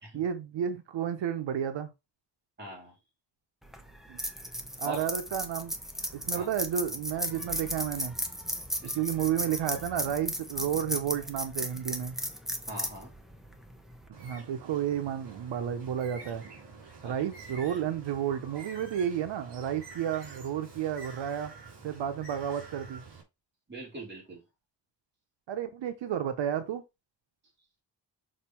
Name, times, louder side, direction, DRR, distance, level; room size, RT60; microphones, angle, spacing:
voice 1, 0.1-1.9 4.1-4.2 4.8-5.7 6.2-8.1 8.9-12.1 14.2-16.4 17.0-21.5 21.8-23.0 25.5-26.8, right 9 dB, 85° right, 0.9 m, -31 dB
voice 2, 2.6-2.9 4.8-5.1 6.4-6.5 8.8-8.9 12.7-13.1 17.0-17.1 23.7-24.4, right 1 dB, 25° right, 3.9 m, -41 dB
sound 1, 3.6-14.1, equal, ahead, 0.9 m, -36 dB
Bird, 14.1-23.2, right 4 dB, 65° right, 3.3 m, -48 dB
6.6 x 4.1 x 4.4 m
wide cardioid pair, 165°, 43 cm